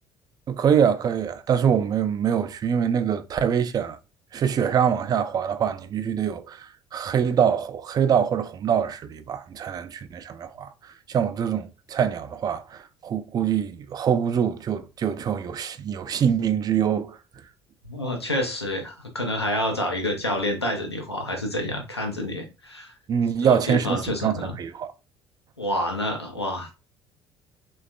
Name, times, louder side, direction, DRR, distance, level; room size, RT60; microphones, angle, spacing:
voice 1, 0.5-4.0 4.3-10.7 11.1-17.2 23.1-24.9, right 8 dB, 30° right, 0.3 m, -24 dB
voice 2, 17.8-22.9 23.4-24.6 25.6-26.7, left 1 dB, 90° left, 0.5 m, -28 dB
3.3 x 2.3 x 2.4 m
figure-of-eight pair, 55°, 13 cm